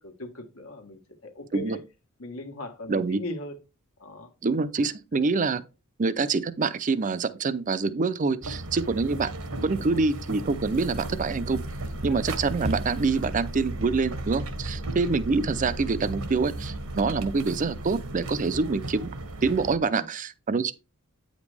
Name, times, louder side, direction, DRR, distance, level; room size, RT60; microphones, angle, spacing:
voice 1, 0.0-1.8 2.2-3.6 4.0-4.3 5.1-5.2 9.8-10.0 12.1-12.2 14.8-15.0 20.0-20.1, left 1 dB, 70° left, 1.4 m, -39 dB
voice 2, 2.9-3.2 4.4-5.6 6.0-9.3 9.6-11.6 12.0-20.7, right 4 dB, 35° right, 0.5 m, -26 dB
sound 1, 8.4-19.8, right 2 dB, 80° right, 1.2 m, -35 dB
9.1 x 5.1 x 3.3 m
head